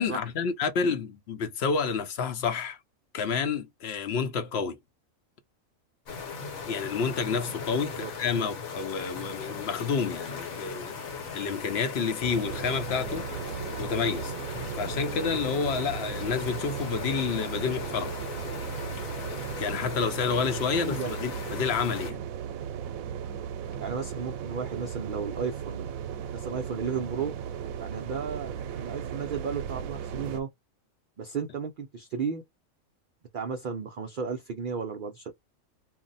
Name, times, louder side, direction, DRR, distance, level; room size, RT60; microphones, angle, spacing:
voice 1, 0.0-2.8 3.1-4.8 6.6-10.9 11.3-13.3 13.8-14.3 14.8-18.1 19.6-22.2, left 5 dB, 60° left, 0.8 m, -29 dB
sound 1, 6.1-22.1, left 5 dB, 75° left, 1.3 m, -38 dB
sound 2, 12.2-30.4, right 8 dB, 85° right, 1.0 m, -36 dB
voice 2, 20.8-21.1 23.8-25.9 26.3-27.3 27.8-30.5 31.2-32.4 33.3-35.3, right 6 dB, 60° right, 0.5 m, -34 dB
2.6 x 2.1 x 3.9 m
omnidirectional pair, 1.4 m